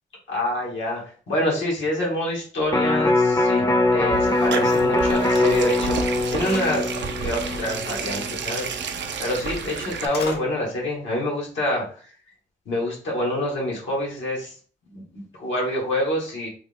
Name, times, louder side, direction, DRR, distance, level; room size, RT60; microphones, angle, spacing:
voice 1, 0.3-6.9 7.2-8.7 9.2-12.1 12.6-14.5 14.9-16.5, left 1 dB, 90° left, -3 dB, 1.4 m, -27 dB
Electric guitar, 2.7-8.9 9.3-9.4, left 2 dB, 20° left, 0.5 m, -22 dB
sound 1, 3.8-10.1, right 6 dB, 75° right, 0.5 m, -31 dB
sound 2, 5.8-5.9 6.3-7.6 9.0-9.1 9.4-10.4, left 2 dB, 60° left, 1.0 m, -35 dB
3.5 x 2.0 x 3.4 m, 0.42 s
cardioid pair, 55°, 19 cm